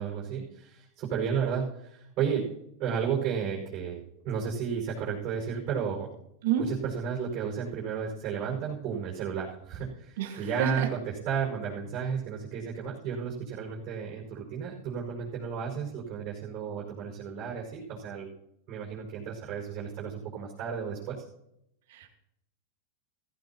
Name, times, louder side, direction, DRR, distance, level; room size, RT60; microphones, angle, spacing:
voice 1, 0.0-2.5 2.8-6.1 6.6-18.3 18.7-21.2, right 7 dB, 45° right, -3 dB, 5.5 m, -33 dB
voice 2, 10.2-10.9 21.9-22.1, right 8 dB, 70° right, 3 dB, 1.8 m, -29 dB
15.5 x 15.0 x 3.0 m, 0.80 s
hypercardioid pair, 120°, 0 cm